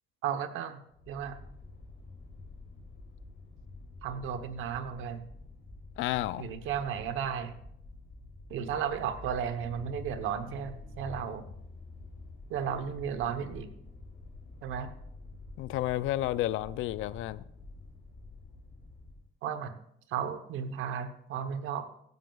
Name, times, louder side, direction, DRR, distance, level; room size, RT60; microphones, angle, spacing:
voice 1, 0.2-1.4 4.0-5.2 6.4-7.5 8.5-11.5 12.5-13.7 14.6-14.9 19.4-19.7 20.1-21.8, right 8 dB, 85° right, 1.0 m, -34 dB
sound 1, 0.9-19.3, left 3 dB, 50° left, 4.4 m, -48 dB
voice 2, 6.0-6.5 15.6-17.4, left 14 dB, 85° left, 0.4 m, -31 dB
15.0 x 11.0 x 2.3 m
cardioid pair, 90°, 20 cm